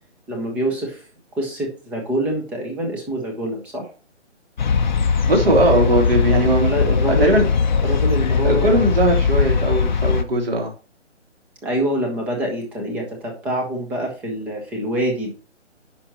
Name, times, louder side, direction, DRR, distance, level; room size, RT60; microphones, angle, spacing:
voice 1, 0.3-1.0 1.4-3.9 6.4-7.3 7.8-8.8 11.6-15.3, right 1 dB, 5° right, 1 dB, 0.8 m, -25 dB
sound 1, 4.6-10.2, left 5 dB, 40° left, 0.7 m, -19 dB
voice 2, 5.3-6.7 7.1-7.4 8.4-10.7, right 1 dB, 50° right, 1 dB, 3.4 m, -19 dB
9.8 x 6.0 x 3.0 m, 0.35 s
figure-of-eight pair, 145°, 37 cm